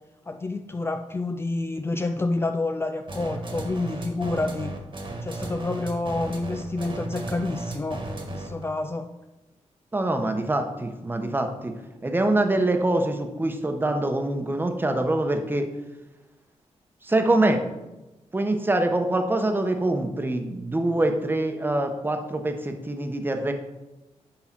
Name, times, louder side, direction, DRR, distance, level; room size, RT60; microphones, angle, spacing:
voice 1, 0.3-4.7 5.2-9.1, left 2 dB, 20° left, 6 dB, 0.4 m, -28 dB
sound 1, 3.1-8.6, right 2 dB, 45° right, 1.6 m, -35 dB
voice 2, 9.9-11.7 12.0-15.7 17.0-17.6 18.3-23.5, right 2 dB, 15° right, 5 dB, 1.0 m, -24 dB
9.8 x 3.9 x 5.9 m, 1.0 s
wide cardioid pair, 105°, 12 cm